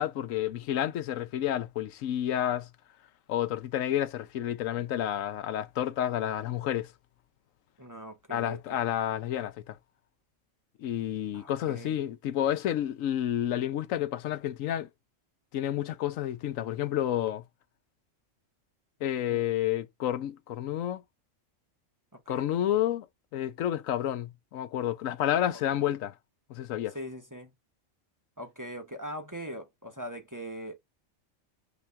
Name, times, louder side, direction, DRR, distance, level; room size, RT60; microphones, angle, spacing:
voice 1, 0.0-2.7 3.3-6.9 8.3-9.8 10.8-14.9 15.5-17.4 19.0-21.0 22.3-23.1 23.3-26.1 26.5-27.0, left 11 dB, 80° left, 1.0 m, -30 dB
voice 2, 7.8-8.8 11.3-11.5 11.8-12.0 19.2-19.4 22.1-22.5 26.9-27.5 28.4-30.8, equal, 15° right, 0.8 m, -41 dB
6.0 x 2.9 x 5.6 m
omnidirectional pair, 1.3 m